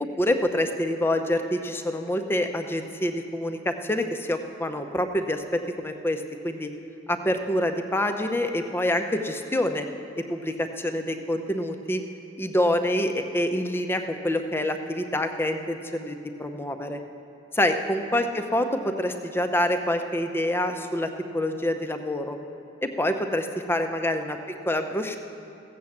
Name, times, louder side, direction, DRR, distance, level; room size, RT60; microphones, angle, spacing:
voice 1, 0.0-6.7 7.1-9.9 10.2-12.0 12.4-17.0 17.5-22.4 22.8-24.4 24.7-25.2, left 1 dB, 10° left, 6 dB, 0.6 m, -26 dB
15.5 x 7.6 x 7.1 m, 2.9 s
head